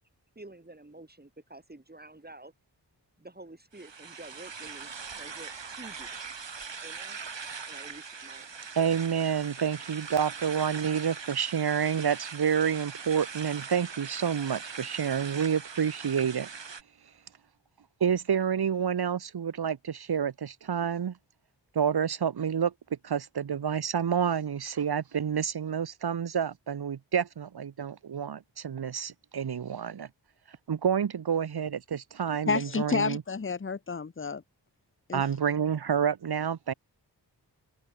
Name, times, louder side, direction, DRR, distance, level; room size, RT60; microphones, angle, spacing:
voice 1, 0.3-2.5 3.2-6.1 6.8-7.2 7.7-8.7, right 2 dB, 20° right, 2.9 m, -49 dB
sound 1, 3.7-16.8, right 5 dB, 75° right, 2.5 m, -41 dB
voice 2, 8.8-16.5 18.0-21.2 21.7-22.7 23.0-30.1 30.7-33.2 35.1-36.7, right 7 dB, 60° right, 0.8 m, -29 dB
voice 3, 32.5-34.4 35.1-35.2, left 5 dB, 30° left, 0.8 m, -30 dB
wide cardioid pair, 55°, 44 cm